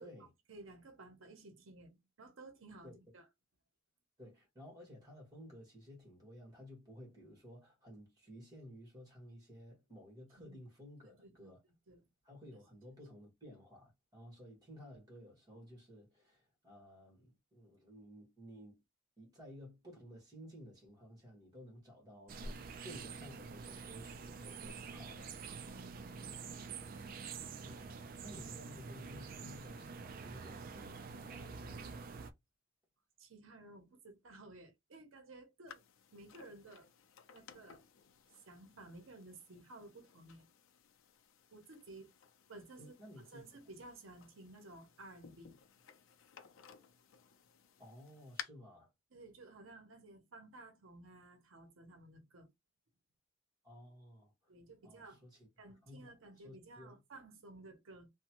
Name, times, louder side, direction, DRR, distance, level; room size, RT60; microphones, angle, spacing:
voice 1, 0.0-3.3 10.4-10.6 11.1-11.6 11.9-12.1 25.6-26.4 26.8-27.0 33.2-35.8 36.1-36.9 37.3-37.8 38.3-40.5 41.5-42.1 42.5-45.5 49.1-52.5 54.5-55.2 55.6-58.1, right 2 dB, 80° right, 0.7 m, -55 dB
voice 2, 4.2-11.6 12.2-18.8 19.2-25.3 27.6-27.8 28.2-32.1 42.8-43.4 47.8-48.9 53.6-54.3 54.8-55.5 55.8-56.1 56.4-57.0, equal, 20° right, 1.4 m, -55 dB
sound 1, 22.3-32.3, right 5 dB, 45° right, 0.3 m, -47 dB
sound 2, 35.7-48.4, left 8 dB, 85° left, 0.5 m, -57 dB
3.0 x 2.2 x 2.9 m
head